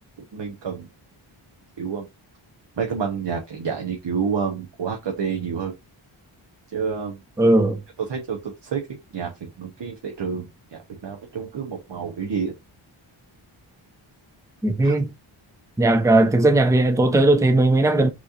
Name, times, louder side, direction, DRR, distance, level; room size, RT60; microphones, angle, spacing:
voice 1, 0.3-0.9 1.8-2.1 2.8-5.7 6.7-7.2 8.1-8.8 9.1-12.5 14.8-14.9, right 6 dB, 55° right, 1.0 m, -29 dB
voice 2, 7.4-7.8 14.6-15.1 15.8-18.1, right 2 dB, 5° right, 0.5 m, -17 dB
6.1 x 3.0 x 2.5 m
wide cardioid pair, 85°, 50 cm